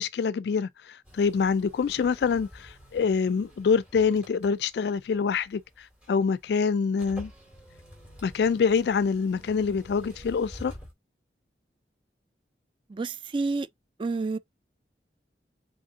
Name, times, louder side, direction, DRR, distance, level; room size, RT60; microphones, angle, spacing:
voice 1, 0.0-7.3 8.2-10.7, left 5 dB, 70° left, 0.3 m, -26 dB
sound 1, 1.0-10.9, equal, 5° right, 2.5 m, -49 dB
voice 2, 12.9-13.7 14.0-14.4, right 3 dB, 30° right, 0.3 m, -29 dB
3.9 x 3.6 x 3.6 m
head